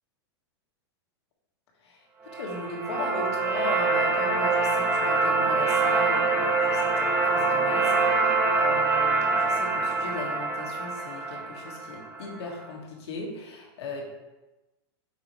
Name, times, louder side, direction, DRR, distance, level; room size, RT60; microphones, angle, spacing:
voice 1, 2.3-14.1, left 3 dB, 75° left, 0 dB, 1.6 m, -38 dB
sound 1, 2.3-12.3, right 3 dB, 10° right, 0.9 m, -25 dB
7.3 x 4.2 x 3.1 m, 1.1 s
supercardioid pair, 135°, 14 cm